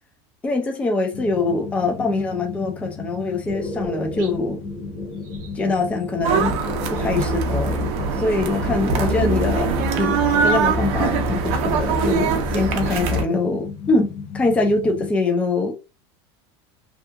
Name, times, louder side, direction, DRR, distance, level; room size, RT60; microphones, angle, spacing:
voice 1, 0.4-4.6 5.5-6.6 6.9-7.9 8.2-15.8, left 2 dB, 10° left, 0.4 m, -23 dB
sound 1, 1.1-15.1, left 6 dB, 65° left, 0.5 m, -35 dB
sound 2, 3.5-10.7 11.6-13.0 13.3-14.2, right 1 dB, 30° right, 0.9 m, -36 dB
sound 3, 6.2-13.2, right 4 dB, 50° right, 0.6 m, -22 dB
2.8 x 2.3 x 2.2 m
cardioid pair, 165°, 13 cm